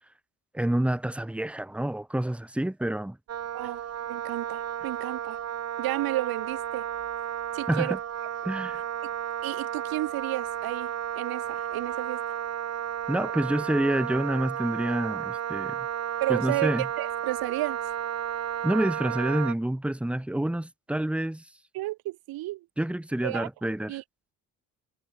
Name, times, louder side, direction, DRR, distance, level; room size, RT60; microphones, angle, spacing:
voice 1, 0.5-3.2 7.7-8.0 8.4-8.8 13.1-15.9 16.3-16.9 18.6-21.4 22.8-24.0, right 1 dB, 5° right, 1.0 m, -28 dB
Wind instrument woodwind instrument, 3.3-19.5, right 9 dB, 45° right, 1.2 m, -33 dB
voice 2, 4.1-5.4 5.8-6.9 7.5-8.0 8.4-8.5 9.4-10.9 11.2-12.2 16.2-17.8 21.7-22.6 23.2-23.5 23.9-24.0, right 18 dB, 70° right, 1.5 m, -32 dB
supercardioid pair, 80°, 37 cm